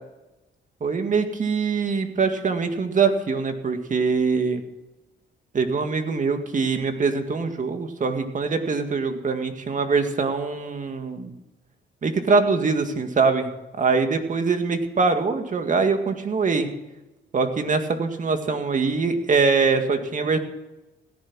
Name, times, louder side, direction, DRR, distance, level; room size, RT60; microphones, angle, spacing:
voice 1, 0.8-4.6 5.5-11.3 12.0-13.5 13.8-16.7 17.3-20.4, right 4 dB, 40° right, 6 dB, 2.1 m, -23 dB
16.5 x 11.0 x 6.2 m, 0.99 s
cardioid pair, 90°, 20 cm